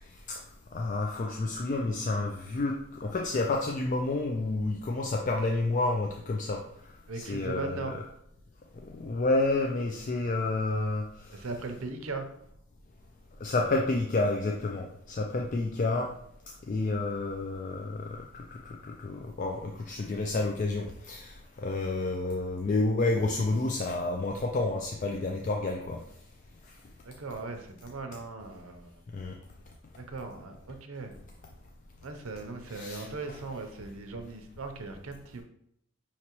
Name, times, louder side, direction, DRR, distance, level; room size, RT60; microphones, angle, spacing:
voice 1, 0.7-6.6 7.2-7.9 8.8-11.4 13.4-16.1 16.7-26.0 29.1-29.4 32.7-33.1, left 2 dB, 35° left, 1 dB, 0.3 m, -30 dB
voice 2, 7.1-8.0 11.3-12.3 27.0-29.0 30.0-31.1 32.0-35.4, right 3 dB, 75° right, 5 dB, 0.7 m, -38 dB
5.7 x 2.9 x 3.0 m, 0.74 s
head